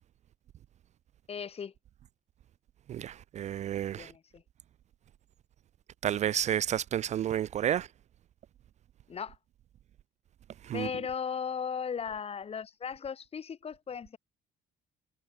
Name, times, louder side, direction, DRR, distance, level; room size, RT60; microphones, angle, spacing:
voice 1, 1.3-1.7 4.0-4.4 9.1-9.4 10.7-14.2, left 7 dB, 35° left, 2.0 m, -37 dB
voice 2, 2.9-4.1 6.0-7.9 10.6-10.9, right 10 dB, 45° right, 0.4 m, -31 dB
cardioid pair, 110°, 17 cm